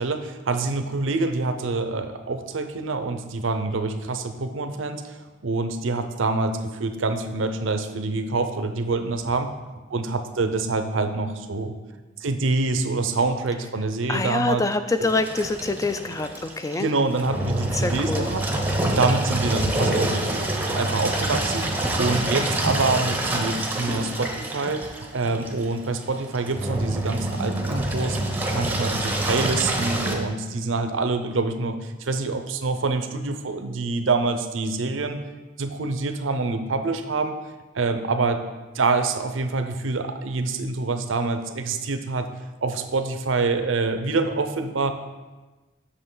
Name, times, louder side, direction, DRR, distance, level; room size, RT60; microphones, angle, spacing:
voice 1, 0.0-5.2 5.4-9.5 9.9-11.7 12.2-14.6 15.0-15.1 16.8-18.4 18.8-24.9 25.1-28.2 28.5-35.2 35.6-37.4 37.7-38.4 38.7-42.3 42.6-44.9, right 3 dB, 90° right, 8 dB, 0.7 m, -26 dB
voice 2, 14.1-16.9 17.7-18.3, left 3 dB, 15° left, 10 dB, 0.3 m, -25 dB
Engine, 15.0-30.2, right 1 dB, 10° right, 0.7 m, -27 dB
7.8 x 6.5 x 3.9 m, 1.2 s
head